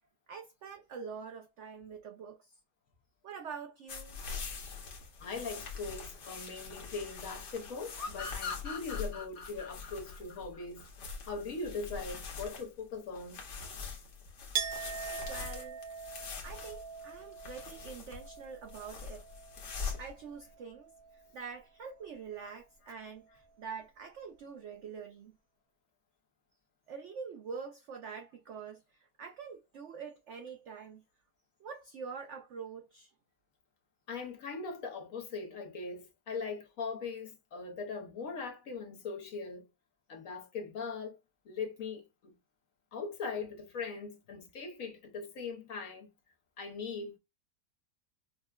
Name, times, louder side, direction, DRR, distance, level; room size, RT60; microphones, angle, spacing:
voice 1, 0.3-2.6 3.2-4.2 15.3-15.8 16.4-19.3 20.0-25.3 26.9-31.0 31.6-33.1, right 6 dB, 90° right, 0.6 m, -45 dB
sound 1, 3.9-20.2, left 5 dB, 75° left, 1.6 m, -44 dB
voice 2, 5.2-10.8 11.3-13.4 34.1-39.6 40.1-41.2 41.5-42.0 42.9-46.1 46.6-47.2, left 4 dB, 60° left, 1.0 m, -40 dB
sound 2, 8.0-11.3, left 5 dB, 40° left, 1.0 m, -41 dB
Chink clink, 14.5-20.1 20.4-21.2, right 7 dB, 70° right, 1.1 m, -42 dB
5.5 x 2.1 x 2.3 m
omnidirectional pair, 1.8 m